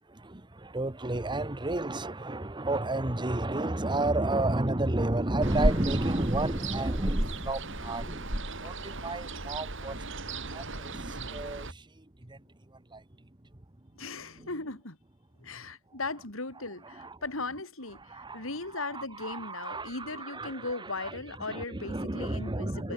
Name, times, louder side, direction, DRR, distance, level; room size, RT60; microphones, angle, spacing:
voice 1, 0.1-10.1 10.5-11.8 12.2-12.4 12.9-13.0 17.0-17.1 18.1-18.4 18.7-21.1 21.4-22.9, right 2 dB, 25° right, 1.3 m, -32 dB
Ocean, 5.4-11.7, right 1 dB, 65° right, 7.1 m, -34 dB
voice 2, 13.9-15.0 15.4-22.9, left 3 dB, 80° left, 4.2 m, -38 dB
head